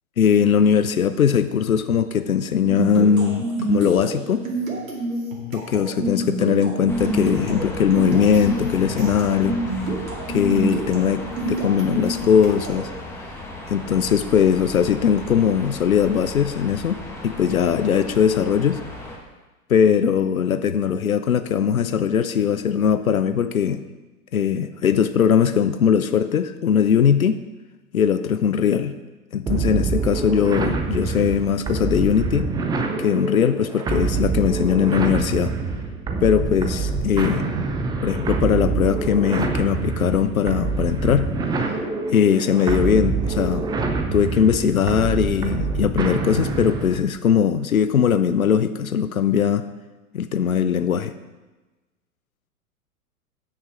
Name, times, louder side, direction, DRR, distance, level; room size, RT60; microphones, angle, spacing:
voice 1, 0.2-4.4 5.5-9.6 10.3-12.9 13.7-18.8 19.7-23.8 24.3-27.4 27.9-28.9 29.3-32.5 33.0-35.5 36.2-37.4 38.0-41.3 42.1-43.7 44.1-49.6 50.1-51.1, left 8 dB, 75° left, 11 dB, 0.6 m, -20 dB
sound 1, 2.7-12.9, right 2 dB, 70° right, 2.5 m, -28 dB
sound 2, 6.9-19.2, left 1 dB, 5° left, 1.3 m, -36 dB
sound 3, 29.5-47.1, right 4 dB, 10° right, 0.6 m, -25 dB
9.1 x 6.5 x 5.6 m, 1.2 s
figure-of-eight pair, 95°, 42 cm